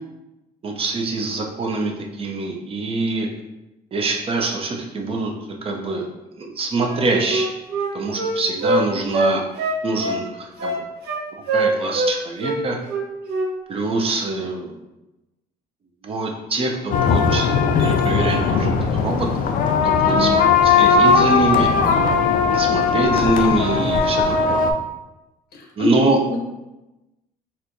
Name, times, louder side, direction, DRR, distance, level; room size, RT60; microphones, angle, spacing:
voice 1, 0.6-3.3 3.9-5.3 5.6-6.1 6.3-7.5 7.9-9.4 9.8-10.8 11.5-12.8 13.7-14.8 16.0-18.7 19.0-19.3 19.8-21.7 22.5-24.6 25.8-26.2, right 3 dB, 35° right, 1 dB, 0.5 m, -24 dB
Wind instrument woodwind instrument, 6.9-8.8 9.1-10.2 10.6-11.2 11.5-12.1 12.4-12.6 12.9-13.5 13.8-14.0, right 2 dB, 70° right, 0.9 m, -23 dB
sound 1, 16.9-24.7, left 5 dB, 55° left, 0.4 m, -18 dB
voice 2, 25.5-25.9 26.3-26.4, left 3 dB, 70° left, 1 dB, 0.8 m, -27 dB
4.2 x 2.3 x 2.6 m, 1.0 s
cardioid pair, 110°, 17 cm